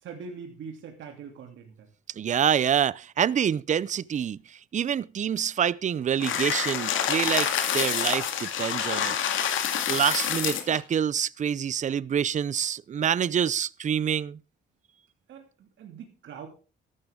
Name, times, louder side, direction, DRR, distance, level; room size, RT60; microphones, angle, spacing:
voice 1, 0.0-1.9 15.3-16.5, right 6 dB, 75° right, 3.0 m, -42 dB
voice 2, 2.2-9.2 9.9-14.4, right 8 dB, 40° right, 0.5 m, -26 dB
sound 1, 6.2-10.8, left 9 dB, 80° left, 2.4 m, -27 dB
14.0 x 12.0 x 3.7 m
cardioid pair, 90°, 20 cm